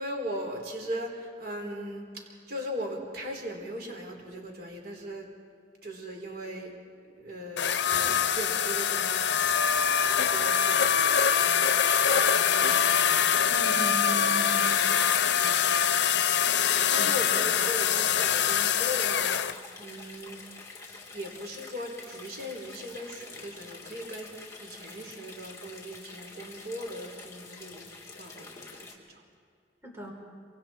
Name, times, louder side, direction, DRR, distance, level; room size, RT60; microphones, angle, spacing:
voice 1, 0.0-5.3 5.8-6.7 7.0-9.5 10.2-11.0 11.4-13.3 15.2-16.5 16.9-19.4 19.8-20.4 21.1-27.8 28.1-28.9, equal, 55° right, 1 dB, 4.0 m, -39 dB
sound 1, 7.6-19.5, left 8 dB, 70° left, 0.7 m, -24 dB
sound 2, 9.6-28.9, left 3 dB, 15° left, 2.6 m, -47 dB
voice 2, 13.5-14.8 17.0-17.5 29.8-30.1, equal, 15° right, -1 dB, 4.2 m, -38 dB
26.5 x 25.0 x 4.4 m, 2.2 s
head